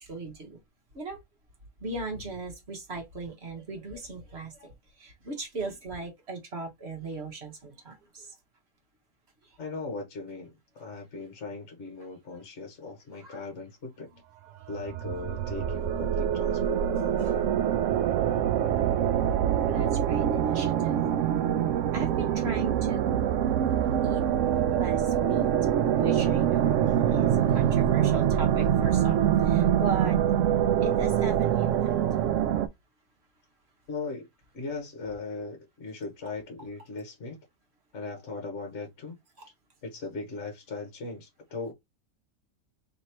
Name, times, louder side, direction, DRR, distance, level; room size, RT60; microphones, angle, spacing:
voice 1, 0.1-0.6 0.9-1.2 1.8-4.7 5.0-8.2 13.2-13.4 19.7-21.0 21.9-23.2 24.0-24.2 24.7-25.5 26.0-26.8 27.1-30.4 30.8-31.9, right 3 dB, 40° right, 1.4 m, -37 dB
voice 2, 9.6-14.1 14.7-17.5 33.9-34.3 34.5-37.4 37.9-39.2 39.8-41.7, left 3 dB, 45° left, 1.3 m, -38 dB
sound 1, 14.6-32.7, right 10 dB, 80° right, 0.7 m, -25 dB
3.4 x 3.0 x 4.3 m
omnidirectional pair, 1.9 m